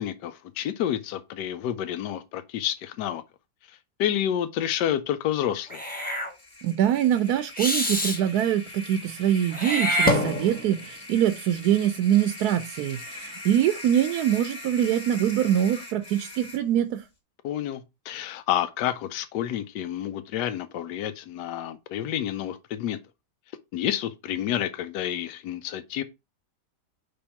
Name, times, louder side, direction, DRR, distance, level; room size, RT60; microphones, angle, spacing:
voice 1, 0.0-3.2 4.0-5.8 17.4-23.0 23.7-26.0, left 11 dB, 85° left, 1.2 m, -29 dB
Meow / Hiss, 5.7-6.3 7.6-8.2 9.5-10.8, equal, 5° left, 1.0 m, -25 dB
sound 1, 6.2-16.6, left 2 dB, 25° left, 1.5 m, -42 dB
voice 2, 6.6-17.0, right 10 dB, 75° right, 1.1 m, -24 dB
5.3 x 3.5 x 5.7 m
omnidirectional pair, 1.8 m